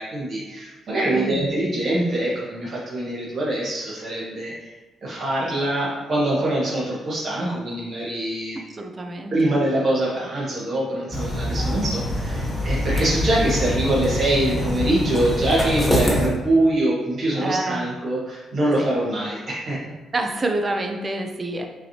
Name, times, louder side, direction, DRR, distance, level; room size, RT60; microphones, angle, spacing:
voice 1, 0.0-4.7 5.0-8.6 9.3-19.8, right 1 dB, 55° right, -7 dB, 1.4 m, -24 dB
voice 2, 1.1-1.5 8.7-9.6 17.4-17.9 18.8-18.9 20.1-21.7, right 2 dB, 30° right, 4 dB, 0.6 m, -27 dB
sound 1, 11.1-16.3, equal, 10° left, 1.0 m, -24 dB
5.5 x 3.2 x 2.8 m, 1.2 s
cardioid pair, 90°, 0 cm